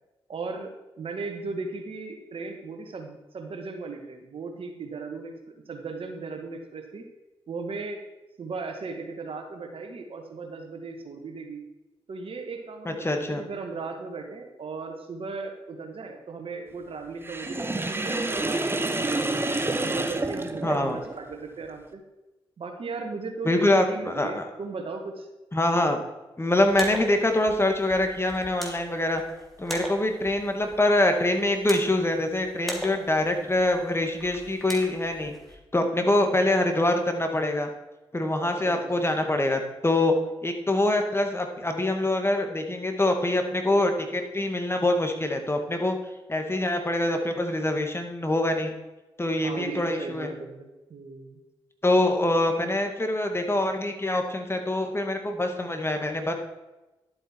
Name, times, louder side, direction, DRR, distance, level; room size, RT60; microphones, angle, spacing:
voice 1, 0.3-0.7 1.0-7.0 7.5-8.0 8.4-11.6 12.1-19.3 19.7-22.0 22.6-25.3 36.0-36.3 38.4-39.0 49.4-51.4, right 4 dB, 60° right, 4 dB, 1.8 m, -37 dB
voice 2, 12.9-13.4 20.6-21.0 23.4-24.4 25.5-26.0 26.4-29.2 29.6-35.3 35.7-37.7 38.1-40.1 40.4-46.0 46.3-48.7 49.2-50.3 51.8-56.3, left 1 dB, 25° left, 5 dB, 2.0 m, -24 dB
Sink (filling or washing), 17.2-21.2, right 2 dB, 20° right, 1.1 m, -28 dB
sound 1, 26.6-35.5, equal, ahead, 3.1 m, -41 dB
12.0 x 7.6 x 4.6 m, 1.1 s
supercardioid pair, 45°, 11 cm